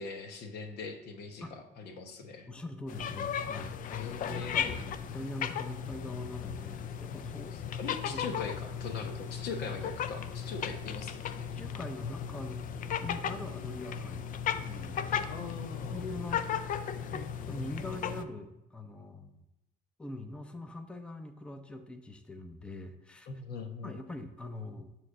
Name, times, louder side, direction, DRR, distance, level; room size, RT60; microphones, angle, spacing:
voice 1, 0.0-2.5 4.0-4.8 7.5-11.5 15.3-16.0 23.3-24.0, left 4 dB, 75° left, 6 dB, 1.1 m, -41 dB
voice 2, 2.5-7.6 8.1-8.2 11.6-12.6 13.0-14.2 14.6-15.3 15.6-16.5 17.1-19.4 20.0-23.3 23.8-24.9, left 2 dB, 5° left, 7 dB, 0.6 m, -43 dB
sound 1, 2.9-18.2, left 8 dB, 55° left, 0.5 m, -36 dB
9.1 x 3.2 x 6.4 m, 0.93 s
cardioid pair, 110°, 17 cm